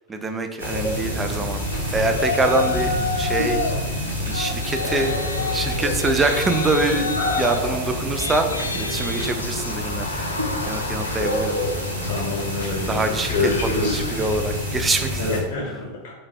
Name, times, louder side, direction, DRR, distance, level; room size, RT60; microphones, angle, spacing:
voice 1, 0.1-1.7 1.9-3.7 4.3-7.1 7.4-8.5 8.7-11.6 12.9-13.5 13.8-15.4, right 2 dB, 15° right, 7 dB, 0.4 m, -25 dB
sound 1, 0.6-15.4, left 1 dB, 80° right, 1.2 m, -27 dB
Yell, 2.1-3.8 4.1-14.6, left 3 dB, 80° left, 0.3 m, -31 dB
voice 2, 12.0-14.0 15.2-16.1, left 3 dB, 55° left, -3 dB, 0.7 m, -27 dB
3.8 x 2.6 x 3.3 m, 1.2 s
figure-of-eight pair, 90°, 0 cm